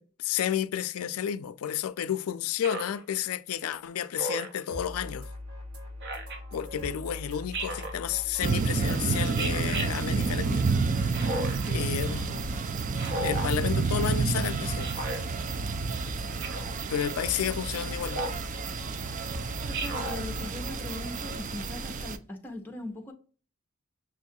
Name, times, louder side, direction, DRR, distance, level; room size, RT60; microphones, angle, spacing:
voice 1, 0.0-5.3 6.5-11.4 11.7-12.6 13.2-14.9 16.9-18.2, left 9 dB, 85° left, 0.4 m, -31 dB
Speech synthesizer, 2.6-3.0 4.2-4.6 6.0-6.4 7.5-8.0 9.4-9.9 11.1-11.7 13.0-13.5 14.8-15.2 16.4-16.8 18.1-18.5 19.7-20.2, right 1 dB, 55° right, 0.9 m, -34 dB
sound 1, 4.7-21.4, left 1 dB, 80° right, 1.8 m, -41 dB
sound 2, 8.4-22.2, right 4 dB, 40° right, 0.3 m, -30 dB
voice 2, 19.6-23.1, left 2 dB, 10° left, 0.6 m, -40 dB
6.3 x 2.3 x 2.7 m
head